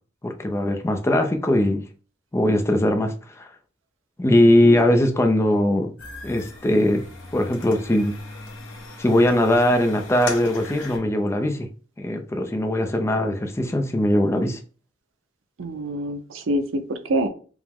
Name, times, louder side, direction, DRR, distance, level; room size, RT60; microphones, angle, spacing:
voice 1, 0.2-1.8 2.3-3.5 4.2-5.9 6.2-7.0 7.3-8.1 9.0-11.7 12.0-14.6, left 1 dB, 15° left, 0.4 m, -20 dB
voice 2, 4.3-4.9 15.6-17.3, right 1 dB, 85° right, 0.5 m, -27 dB
sound 1, 6.0-11.0, left 3 dB, 80° left, 1.1 m, -38 dB
4.7 x 2.1 x 3.5 m
head